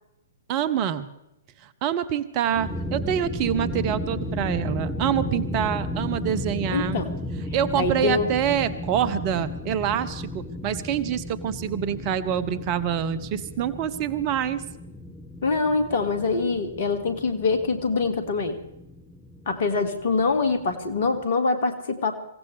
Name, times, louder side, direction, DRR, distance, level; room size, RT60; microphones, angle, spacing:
voice 1, 0.5-1.1 1.6-7.0 7.3-14.6, right 9 dB, 35° right, 15 dB, 0.9 m, -26 dB
sound 1, 2.4-21.3, left 1 dB, 5° left, 1.4 m, -34 dB
voice 2, 6.7-7.1 7.7-8.3 15.4-18.6 19.5-22.1, left 4 dB, 50° left, 8 dB, 2.2 m, -24 dB
26.0 x 16.0 x 3.4 m, 0.86 s
figure-of-eight pair, 115°, 0 cm